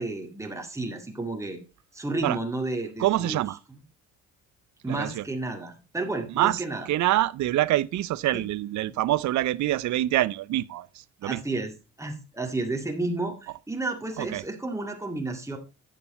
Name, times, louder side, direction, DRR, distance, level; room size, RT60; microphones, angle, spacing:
voice 1, 0.0-1.6 1.9-3.4 3.7-3.8 4.8-6.9 11.2-11.7 12.0-15.6, right 2 dB, 10° right, 2.0 m, -31 dB
voice 2, 3.0-3.6 4.9-5.2 6.3-6.6 6.9-11.4 14.2-14.4, right 15 dB, 70° right, 0.6 m, -25 dB
9.2 x 6.8 x 4.1 m
cardioid pair, 90°, 30 cm